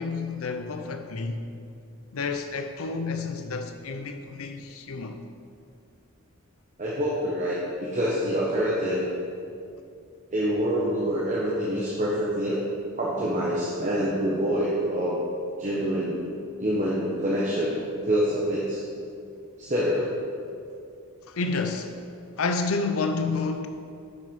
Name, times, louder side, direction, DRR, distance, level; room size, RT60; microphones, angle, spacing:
voice 1, 0.0-1.5 2.1-5.2 21.3-22.0 22.4-23.7, left 4 dB, 65° left, 0.6 m, -30 dB
voice 2, 6.8-9.1 10.3-12.6 13.0-15.2 15.6-16.3 16.6-18.8 19.6-20.2, equal, 35° right, 1.1 m, -26 dB
9.2 x 6.7 x 5.3 m
head